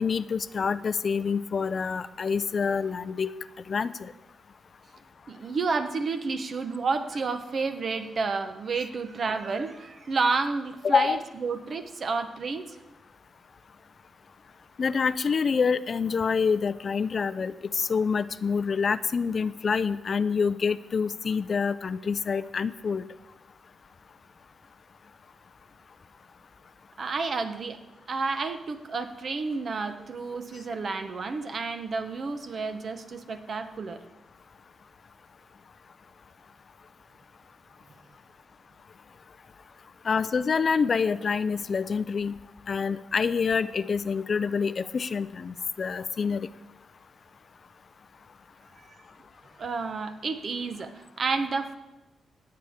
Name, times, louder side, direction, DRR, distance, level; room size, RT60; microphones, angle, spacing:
voice 1, 0.0-3.3 3.7-4.1 10.8-11.2 14.8-23.1 40.0-42.4 42.7-46.5, left 5 dB, 50° left, 16 dB, 0.3 m, -27 dB
voice 2, 5.3-12.7 27.0-27.8 28.1-34.0 49.6-51.7, right 4 dB, 50° right, 9 dB, 0.8 m, -30 dB
16.5 x 8.7 x 3.6 m, 1.0 s
cardioid pair, 100°, 0 cm